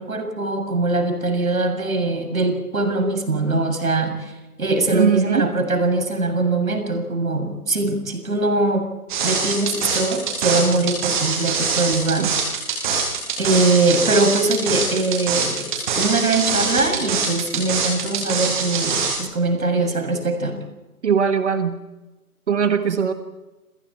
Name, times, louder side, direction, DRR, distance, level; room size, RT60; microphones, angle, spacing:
voice 1, 0.0-4.3 4.6-8.8 9.2-12.3 13.4-15.7 15.9-20.6, right 2 dB, 65° right, 5 dB, 7.1 m, -22 dB
voice 2, 4.9-5.5 12.2-12.3 21.0-21.8 22.5-23.1, right 7 dB, 50° right, 8 dB, 1.6 m, -20 dB
sound 1, 9.1-19.2, right 5 dB, 30° right, 7.9 m, -23 dB
29.5 x 27.5 x 4.5 m, 1.1 s
figure-of-eight pair, 145°, 45 cm